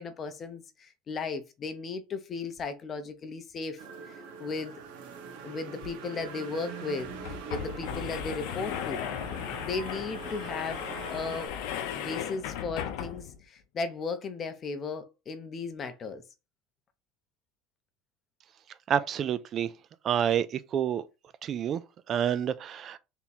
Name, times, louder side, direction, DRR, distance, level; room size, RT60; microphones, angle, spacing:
voice 1, 0.0-4.8 5.4-7.1 7.5-9.1 9.6-10.8 11.1-11.5 11.9-16.2, left 4 dB, 25° left, 0.6 m, -36 dB
sound 1, 3.8-11.5, right 5 dB, 85° right, 1.1 m, -43 dB
sound 2, 5.8-5.9 6.2-6.3 7.0-13.4, left 9 dB, 65° left, 0.7 m, -36 dB
voice 2, 18.9-19.7 20.0-20.5 20.7-21.0 21.4-21.8 22.1-23.0, right 9 dB, 30° right, 0.4 m, -28 dB
3.5 x 2.9 x 4.1 m
cardioid pair, 170°, 0 cm